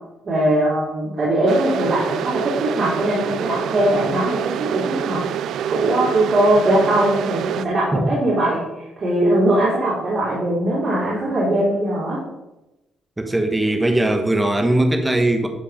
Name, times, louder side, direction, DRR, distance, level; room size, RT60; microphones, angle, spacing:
voice 1, 0.2-5.3 5.7-12.2, right 1 dB, 45° right, -8 dB, 3.8 m, -20 dB
sound 1, 1.5-7.7, right 9 dB, 75° right, 0.4 m, -26 dB
voice 2, 13.2-15.5, right 1 dB, 10° right, 5 dB, 1.3 m, -19 dB
12.0 x 5.1 x 5.2 m, 0.98 s
cardioid pair, 90°, 0 cm